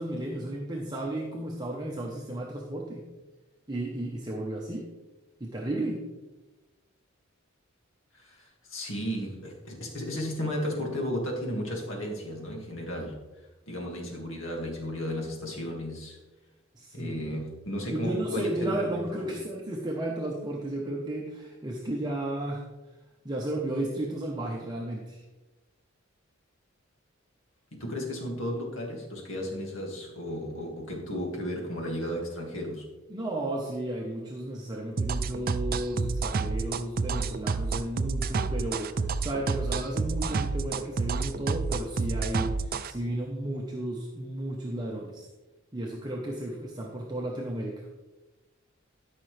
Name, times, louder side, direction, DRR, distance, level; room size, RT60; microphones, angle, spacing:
voice 1, 0.0-3.1 3.7-4.9 5.4-6.1 16.7-17.2 17.9-22.6 23.2-25.2 33.1-45.3 45.7-47.9, right 1 dB, 20° right, -1 dB, 0.9 m, -33 dB
voice 2, 8.1-13.2 13.7-16.2 16.9-19.4 27.7-32.9, equal, 75° left, 0 dB, 2.1 m, -34 dB
sound 1, 35.0-42.9, right 4 dB, 45° right, 0.4 m, -29 dB
13.0 x 5.8 x 3.3 m, 1.1 s
head